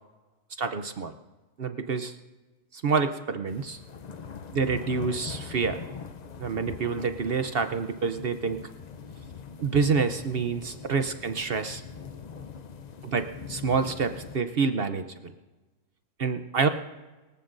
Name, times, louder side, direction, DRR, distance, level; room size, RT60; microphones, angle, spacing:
voice 1, 0.6-1.1 1.6-2.1 2.7-3.8 4.5-5.8 6.4-8.6 9.6-11.8 13.0-15.3 16.2-16.7, right 5 dB, 55° right, 9 dB, 0.7 m, -27 dB
sound 1, 3.5-14.4, left 6 dB, 70° left, 0.4 m, -42 dB
24.5 x 14.5 x 2.6 m, 1.2 s
omnidirectional pair, 1.6 m